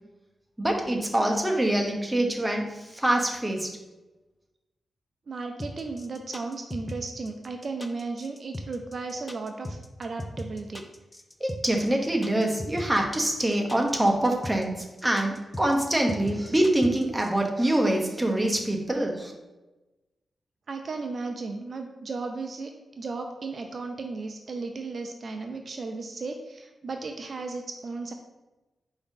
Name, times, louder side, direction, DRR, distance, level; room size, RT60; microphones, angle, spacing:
voice 1, 0.6-3.7 11.4-19.3, right 1 dB, 10° right, 1 dB, 0.8 m, -25 dB
voice 2, 5.3-10.8 20.7-28.1, right 3 dB, 55° right, 4 dB, 0.3 m, -35 dB
sound 1, 5.6-17.3, left 1 dB, 15° left, 0.4 m, -38 dB
4.7 x 2.6 x 3.7 m, 1.1 s
cardioid pair, 75°, 0 cm